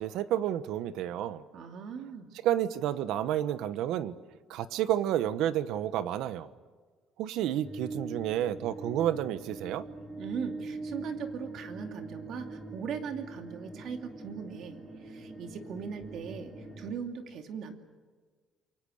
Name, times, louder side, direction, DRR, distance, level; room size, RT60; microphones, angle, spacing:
voice 1, 0.0-1.4 2.4-4.1 4.5-6.5 7.2-9.8, right 11 dB, 75° right, 14 dB, 1.2 m, -30 dB
voice 2, 1.5-2.3 10.2-17.7, right 6 dB, 50° right, 5 dB, 2.6 m, -39 dB
sound 1, 7.6-16.9, right 2 dB, 20° right, 4.3 m, -42 dB
28.5 x 23.5 x 6.5 m, 1.5 s
cardioid pair, 175°, 0 cm